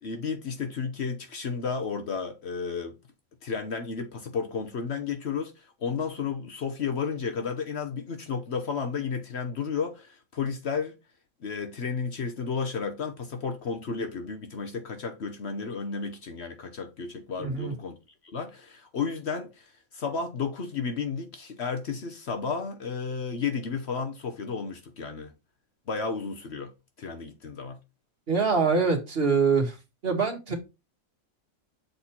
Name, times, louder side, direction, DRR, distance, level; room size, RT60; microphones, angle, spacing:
voice 1, 0.0-3.0 3.4-10.9 11.4-18.0 18.2-19.7 19.9-25.3 25.9-26.7 27.0-27.8, left 5 dB, 55° left, 1.1 m, -32 dB
voice 2, 17.4-17.7 28.3-29.8 30.0-30.5, right 5 dB, 45° right, 1.7 m, -24 dB
6.8 x 4.2 x 4.3 m
omnidirectional pair, 1.5 m